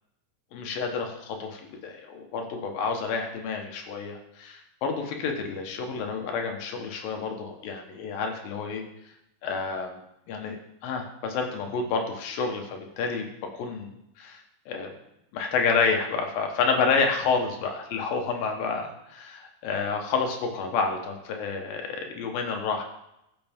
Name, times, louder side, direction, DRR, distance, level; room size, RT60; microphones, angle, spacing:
voice 1, 0.5-8.8 9.4-10.0 10.3-13.3 13.5-13.9 14.2-14.9 15.3-22.8, left 5 dB, 70° left, 3 dB, 2.8 m, -29 dB
14.5 x 7.1 x 3.6 m, 0.83 s
omnidirectional pair, 4.5 m